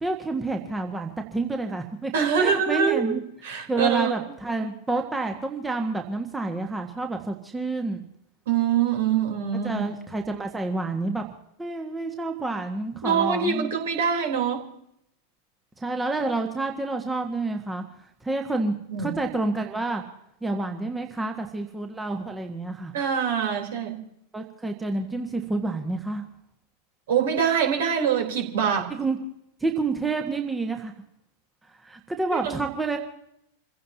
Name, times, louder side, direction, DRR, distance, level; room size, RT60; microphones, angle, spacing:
voice 1, 0.0-2.1 2.4-3.2 3.7-8.0 9.6-11.2 11.6-13.7 15.8-17.8 18.2-20.0 20.4-22.9 24.3-26.2 28.9-29.2 29.6-30.9 31.8-33.0, right 3 dB, 10° right, 3 dB, 1.6 m, -28 dB
voice 2, 2.1-4.1 8.5-9.8 13.0-14.7 18.9-19.2 22.9-24.0 27.1-28.9 32.3-32.7, right 7 dB, 60° right, 2 dB, 3.8 m, -24 dB
28.0 x 16.0 x 2.9 m, 0.77 s
figure-of-eight pair, 90°, 0 cm